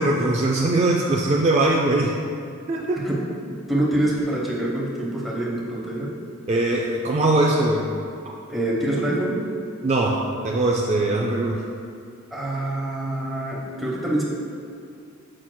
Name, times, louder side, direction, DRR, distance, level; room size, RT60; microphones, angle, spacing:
voice 1, 0.0-2.2 2.7-3.0 6.5-7.9 8.2-8.3 9.8-10.2 10.4-11.6, right 2 dB, 35° right, -1 dB, 0.3 m, -21 dB
voice 2, 3.7-6.1 8.5-9.4 12.3-14.2, right 1 dB, ahead, -6 dB, 1.0 m, -25 dB
7.6 x 5.7 x 2.2 m, 2.4 s
head